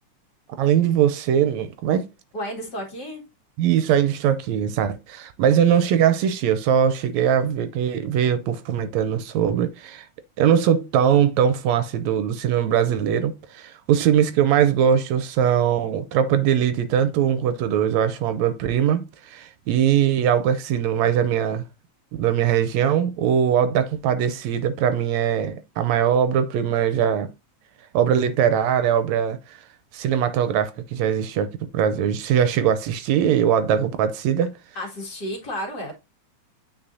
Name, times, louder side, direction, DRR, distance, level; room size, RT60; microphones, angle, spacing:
voice 1, 0.6-2.1 3.6-10.1 10.4-21.6 22.1-27.3 27.9-29.6 29.9-34.5, right 9 dB, 80° right, 1.8 m, -21 dB
voice 2, 2.3-3.2 34.8-35.9, equal, 40° left, 2.4 m, -32 dB
8.9 x 4.7 x 2.7 m
omnidirectional pair, 3.4 m